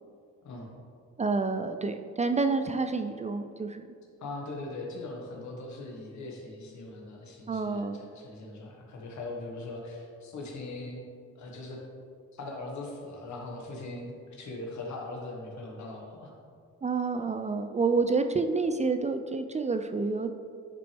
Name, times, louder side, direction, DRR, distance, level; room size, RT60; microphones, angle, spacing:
voice 1, 0.4-0.8 4.2-11.0 11.4-11.8 12.3-16.3, left 2 dB, 70° left, 0 dB, 1.8 m, -40 dB
voice 2, 1.2-3.9 7.5-8.1 16.8-20.3, right 4 dB, 25° right, 8 dB, 0.4 m, -28 dB
10.5 x 5.8 x 3.5 m, 2.2 s
cardioid pair, 90°, 30 cm